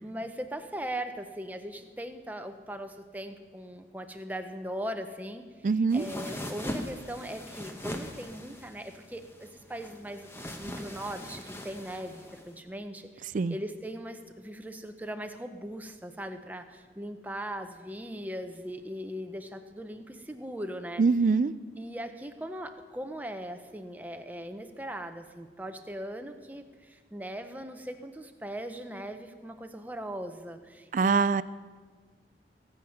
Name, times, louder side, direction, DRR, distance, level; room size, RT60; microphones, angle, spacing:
voice 1, 0.0-5.4 5.9-10.3 10.6-21.0 21.8-31.4, equal, 10° right, 6 dB, 0.7 m, -39 dB
voice 2, 5.6-6.1 13.3-13.6 21.0-21.5 30.9-31.4, right 4 dB, 45° right, 16 dB, 0.3 m, -23 dB
sound 1, 5.9-12.5, left 1 dB, 15° left, 1.0 m, -40 dB
22.0 x 7.9 x 5.8 m, 1.5 s
head